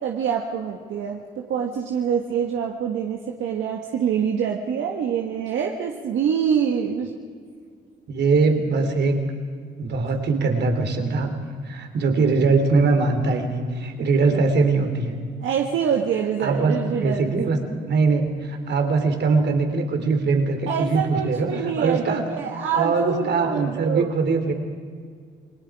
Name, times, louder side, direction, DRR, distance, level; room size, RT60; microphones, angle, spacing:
voice 1, 0.0-7.1 15.4-17.3 20.7-24.1, right 7 dB, 80° right, 1 dB, 1.8 m, -25 dB
voice 2, 8.1-9.2 9.8-11.3 11.6-15.2 16.4-22.2 22.7-24.5, right 4 dB, 60° right, 5 dB, 3.4 m, -22 dB
29.0 x 20.5 x 5.0 m, 2.1 s
cardioid pair, 90°, 20 cm